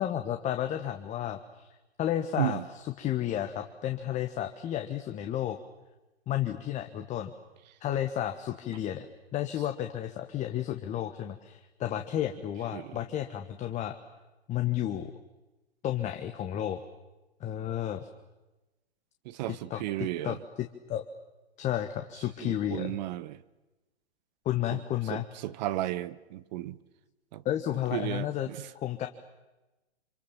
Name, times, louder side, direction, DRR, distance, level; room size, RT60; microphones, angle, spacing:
voice 1, 0.0-1.7 2.0-5.6 6.3-7.3 7.8-9.1 9.3-13.9 14.5-15.1 15.8-16.8 17.4-18.1 19.7-21.0 21.6-23.0 24.4-25.2 27.4-28.5 28.8-29.1, left 11 dB, 20° left, 6 dB, 1.3 m, -32 dB
voice 2, 19.2-20.4 22.4-23.4 24.7-24.8 25.1-26.8 27.3-27.4 27.9-28.7, right 15 dB, 40° right, 16 dB, 1.1 m, -34 dB
28.0 x 27.0 x 7.2 m, 1.1 s
hypercardioid pair, 125°, 33 cm